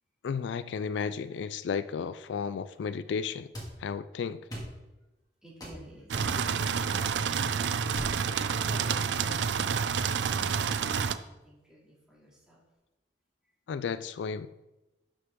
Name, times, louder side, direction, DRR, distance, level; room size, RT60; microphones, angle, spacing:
voice 1, 0.2-3.5 3.8-4.4 13.7-14.6, left 6 dB, 80° left, 14 dB, 0.3 m, -33 dB
sound 1, 3.5-3.7 4.5-4.7 5.6-5.8 6.1-6.3 7.9-8.2, equal, 20° left, 2.1 m, -39 dB
voice 2, 5.4-7.3 8.5-12.6, equal, 5° right, -6 dB, 2.6 m, -51 dB
sound 2, 6.1-11.2, right 6 dB, 75° right, 0.4 m, -29 dB
11.5 x 6.1 x 3.7 m, 1.0 s
head